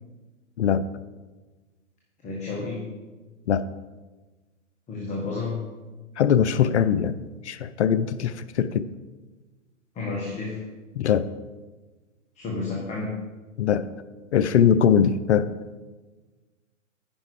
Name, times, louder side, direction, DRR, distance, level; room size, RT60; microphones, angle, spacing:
voice 1, 2.2-2.9 4.9-5.7 9.9-10.6 12.3-13.2, left 3 dB, 15° left, -2 dB, 1.3 m, -31 dB
voice 2, 6.2-7.2 7.4-8.9 11.0-11.3 13.6-13.9 14.3-15.5, left 8 dB, 60° left, 14 dB, 0.5 m, -21 dB
9.7 x 5.6 x 4.8 m, 1.3 s
figure-of-eight pair, 120°, 39 cm